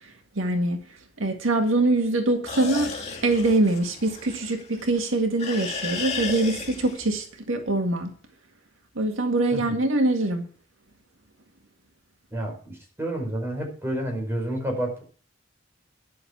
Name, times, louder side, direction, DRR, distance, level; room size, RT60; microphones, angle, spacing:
voice 1, 0.4-0.8 1.2-2.9 3.2-8.1 9.0-10.4, right 2 dB, 85° right, 1.8 m, -23 dB
sound 1, 2.5-5.0 5.4-7.2, left 4 dB, 35° left, 2.2 m, -34 dB
voice 2, 12.3-15.0, right 1 dB, 15° right, 5.1 m, -29 dB
11.0 x 6.6 x 7.3 m
head